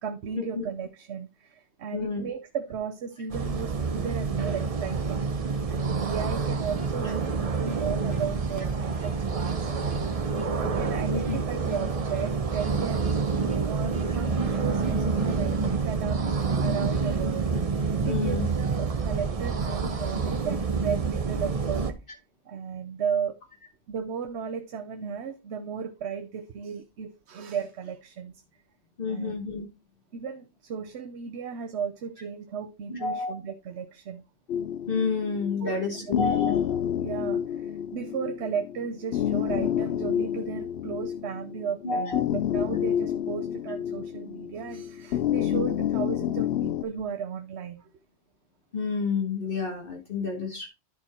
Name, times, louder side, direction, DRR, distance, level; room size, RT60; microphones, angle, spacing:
voice 1, 0.0-10.0 10.4-16.2 16.6-17.5 18.0-22.0 22.5-23.4 23.9-28.3 29.1-29.3 30.1-34.2 35.6-36.1 37.0-47.9, right 7 dB, 80° right, 1.0 m, -35 dB
voice 2, 1.9-2.3 11.1-11.4 18.0-18.5 29.0-29.7 32.9-33.3 34.9-36.9 41.8-42.3 48.7-50.7, left 4 dB, 55° left, 1.7 m, -30 dB
sound 1, 3.3-21.9, right 4 dB, 35° right, 0.8 m, -28 dB
sound 2, 6.5-15.8, right 4 dB, 55° right, 1.4 m, -46 dB
sound 3, 34.5-46.8, left 10 dB, 70° left, 0.8 m, -29 dB
10.5 x 4.4 x 4.3 m
omnidirectional pair, 1.1 m